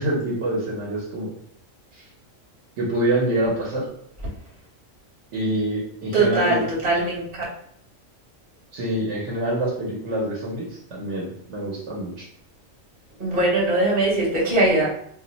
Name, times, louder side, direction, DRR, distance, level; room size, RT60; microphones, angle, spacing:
voice 1, 0.0-1.3 1.9-2.0 2.8-3.8 5.3-6.6 8.7-12.3, right 1 dB, 65° right, -4 dB, 1.1 m, -26 dB
voice 2, 6.1-7.4 13.2-15.0, right 2 dB, 30° right, -5 dB, 1.1 m, -21 dB
2.5 x 2.1 x 3.9 m, 0.66 s
omnidirectional pair, 1.3 m